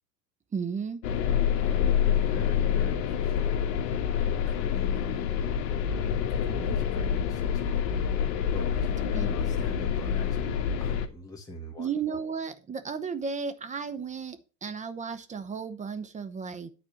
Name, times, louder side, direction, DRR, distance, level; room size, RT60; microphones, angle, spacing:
voice 1, 0.5-1.0 9.1-9.3 11.8-16.7, right 6 dB, 15° right, 0.8 m, -34 dB
sound 1, 1.0-11.1, left 8 dB, 55° left, 1.5 m, -27 dB
voice 2, 1.6-3.6 4.0-5.5 6.4-7.8 8.5-11.9, equal, 5° left, 1.8 m, -42 dB
9.9 x 4.4 x 7.0 m
hypercardioid pair, 105°, 49 cm